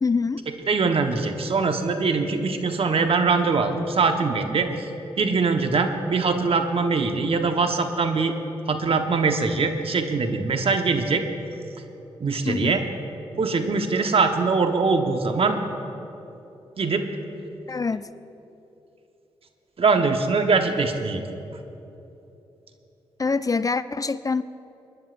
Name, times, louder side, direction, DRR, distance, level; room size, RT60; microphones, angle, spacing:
voice 1, 0.0-0.4 12.5-12.7 17.7-18.1 23.2-24.4, left 4 dB, 30° left, 14 dB, 0.4 m, -25 dB
voice 2, 0.7-4.8 5.2-8.3 8.7-11.2 12.2-12.8 13.4-15.6 16.8-17.0 19.8-21.2, right 4 dB, 55° right, 6 dB, 1.1 m, -22 dB
26.5 x 10.0 x 2.5 m, 3.0 s
supercardioid pair, 45°, 12 cm